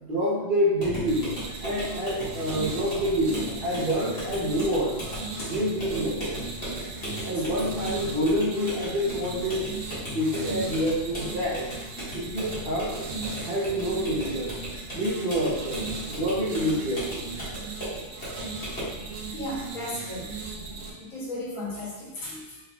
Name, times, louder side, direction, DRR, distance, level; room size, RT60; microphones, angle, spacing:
voice 1, 0.0-1.3 1.6-5.0 5.4-6.4 7.2-11.7 12.1-13.0 13.4-14.6 14.9-17.3, equal, 45° right, -5 dB, 0.9 m, -27 dB
sound 1, 0.8-19.0, equal, 45° left, 1.7 m, -37 dB
sound 2, 1.1-20.9, right 3 dB, 75° right, 1.0 m, -37 dB
voice 2, 19.1-20.3 20.8-22.6, left 1 dB, 90° left, -5 dB, 1.6 m, -35 dB
4.3 x 3.6 x 2.3 m, 1.1 s
omnidirectional pair, 1.4 m